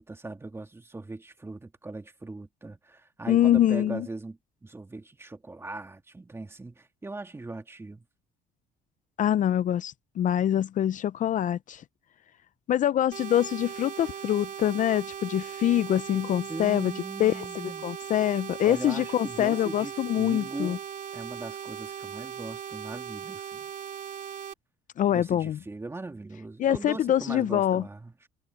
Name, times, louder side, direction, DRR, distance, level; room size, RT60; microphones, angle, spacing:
voice 1, 0.0-8.0 16.5-17.9 18.6-20.8 21.1-23.7 25.1-28.3, right 2 dB, 15° right, 2.1 m, -40 dB
voice 2, 3.3-4.1 9.2-11.8 12.7-16.9 17.2-20.8 25.0-25.6 26.6-27.8, left 11 dB, 50° left, 0.5 m, -25 dB
sound 1, 13.1-24.5, right 8 dB, 50° right, 3.0 m, -39 dB
cardioid pair, 110°, 17 cm